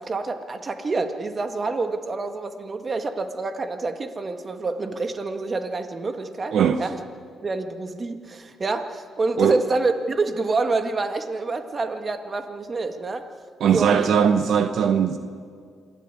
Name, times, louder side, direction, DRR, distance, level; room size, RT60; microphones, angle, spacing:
voice 1, 0.0-7.0 7.4-13.3 13.7-14.3, right 3 dB, 35° right, 1.9 m, -27 dB
voice 2, 6.5-6.9 9.4-9.6 13.6-15.2, right 7 dB, 70° right, 1.0 m, -19 dB
27.0 x 12.5 x 9.7 m
cardioid pair, 90°, 0 cm